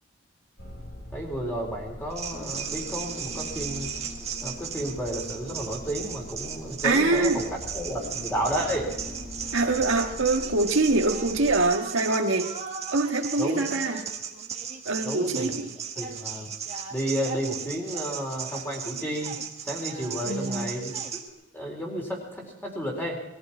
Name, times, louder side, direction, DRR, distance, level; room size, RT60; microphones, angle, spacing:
sound 1, 0.6-11.6, left 1 dB, 60° left, 6.3 m, -42 dB
voice 1, 1.1-3.9 4.4-7.5 7.7-8.9 13.4-13.8 15.0-15.6 16.0-16.5 16.9-21.2 21.5-23.2, equal, 10° left, -1 dB, 4.2 m, -32 dB
sound 2, 2.1-21.3, right 7 dB, 30° right, 1.6 m, -36 dB
voice 2, 6.8-7.4 9.5-12.5 12.9-14.0 14.8-15.7 20.2-20.7, right 2 dB, 75° right, 3 dB, 1.6 m, -24 dB
21.5 x 15.0 x 4.4 m, 0.94 s
head